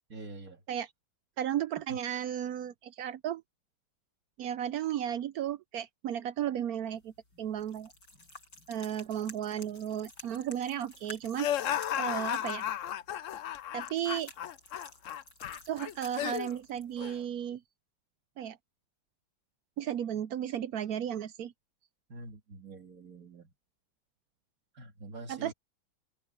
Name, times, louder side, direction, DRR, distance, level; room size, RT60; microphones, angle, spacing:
voice 1, 0.1-0.6 1.9-2.0 22.1-23.5 24.7-25.5, right 2 dB, 45° right, 2.5 m, -46 dB
voice 2, 1.4-3.4 4.4-7.9 8.7-11.7 12.0-12.6 13.7-14.3 15.7-17.6 18.4-18.6 19.8-21.5 25.3-25.5, right 10 dB, 75° right, 0.8 m, -34 dB
sound 1, 6.9-17.2, left 1 dB, 60° left, 8.5 m, -52 dB
sound 2, 11.4-16.5 17.0-17.2, left 11 dB, 80° left, 0.7 m, -34 dB
omnidirectional pair, 2.2 m